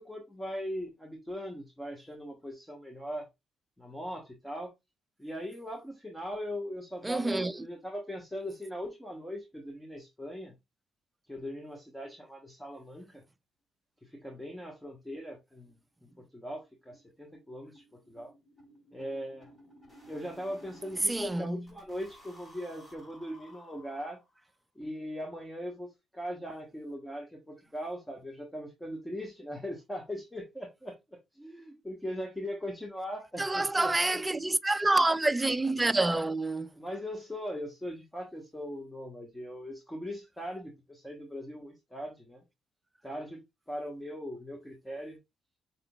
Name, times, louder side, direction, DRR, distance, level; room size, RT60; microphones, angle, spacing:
voice 1, 0.0-3.3 3.8-4.7 5.2-10.6 11.3-13.2 14.0-15.8 16.2-18.3 18.9-19.5 20.1-24.2 24.7-34.2 36.7-42.4 43.0-45.2, equal, 10° left, 1.3 m, -40 dB
voice 2, 7.0-7.6 21.1-21.6 33.4-36.7, right 2 dB, 15° right, 0.4 m, -27 dB
sound 1, 14.4-14.5 14.8-14.9 15.3-15.4 15.7-15.8 16.1-21.3 21.7-24.5, equal, 30° left, 3.4 m, -56 dB
5.6 x 3.7 x 2.4 m
cardioid pair, 90°, 0 cm